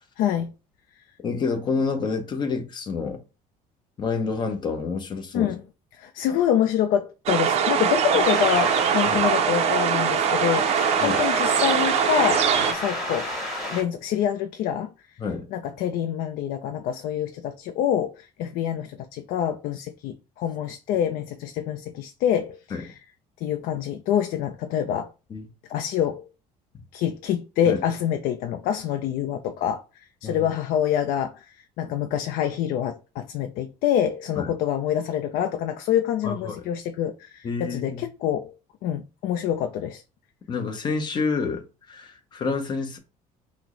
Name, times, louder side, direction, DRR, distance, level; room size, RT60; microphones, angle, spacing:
voice 1, 0.2-0.5 5.3-5.6 6.0-13.3 13.6-14.9 15.5-23.0 23.4-25.1 25.7-26.3 26.9-29.8 30.2-38.5 38.8-40.0, left 9 dB, 75° left, 0.4 m, -26 dB
voice 2, 1.2-3.2 4.0-5.5 9.1-9.3 11.0-11.2 15.2-15.5 22.7-22.8 25.3-25.5 27.7-27.8 30.2-30.5 34.4-34.5 36.2-36.6 37.4-38.0 40.5-43.0, left 4 dB, 30° left, 0.7 m, -28 dB
sound 1, 7.3-12.7, right 7 dB, 45° right, 0.4 m, -22 dB
sound 2, 8.2-13.8, left 1 dB, 5° right, 2.1 m, -32 dB
5.8 x 2.1 x 3.0 m
cardioid pair, 155°, 15 cm